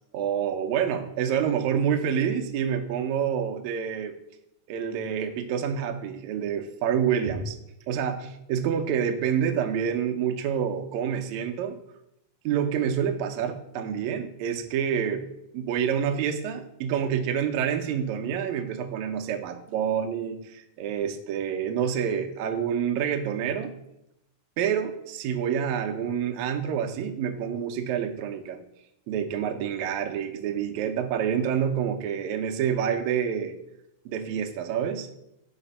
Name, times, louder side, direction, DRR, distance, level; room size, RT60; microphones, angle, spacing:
voice 1, 0.1-4.1 4.7-7.6 7.9-11.8 12.4-15.2 15.5-23.7 24.6-28.6 29.1-33.5 34.0-35.1, right 8 dB, 85° right, 4 dB, 1.6 m, -27 dB
5.9 x 5.0 x 5.5 m, 0.83 s
omnidirectional pair, 4.0 m